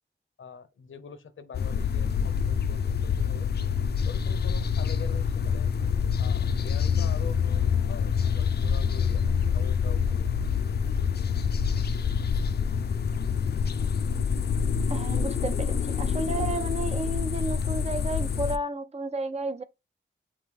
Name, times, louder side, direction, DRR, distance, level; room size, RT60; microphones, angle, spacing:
voice 1, 0.4-3.5 4.0-5.7 6.2-10.4, left 5 dB, 85° left, 0.9 m, -44 dB
sound 1, 1.5-18.6, left 6 dB, 55° left, 0.4 m, -26 dB
voice 2, 14.9-19.6, right 2 dB, 35° right, 0.6 m, -32 dB
8.5 x 3.1 x 3.5 m
wide cardioid pair, 120°, 20 cm